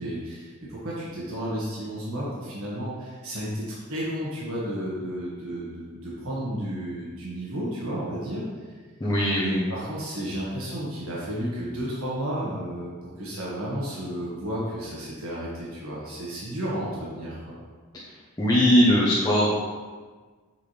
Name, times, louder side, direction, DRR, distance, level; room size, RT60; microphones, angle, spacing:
voice 1, 0.0-8.6 9.4-17.5, equal, 80° right, -7 dB, 1.5 m, -32 dB
voice 2, 9.0-9.7 18.4-19.5, equal, 15° left, -9 dB, 0.8 m, -20 dB
6.9 x 4.5 x 3.3 m, 1.4 s
head